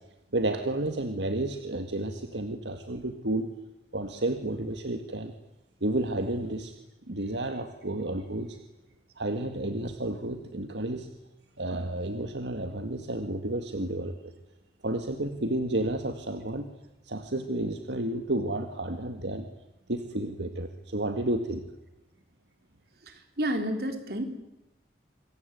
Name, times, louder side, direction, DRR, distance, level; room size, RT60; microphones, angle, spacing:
voice 1, 0.3-3.5 3.9-5.3 5.8-6.7 7.1-8.6 9.2-11.1 11.6-14.1 14.8-16.7 17.0-19.5 19.9-21.6, right 1 dB, 75° right, 7 dB, 1.9 m, -31 dB
voice 2, 23.1-24.2, right 1 dB, 55° right, 7 dB, 3.8 m, -30 dB
27.0 x 22.0 x 9.4 m, 0.91 s
head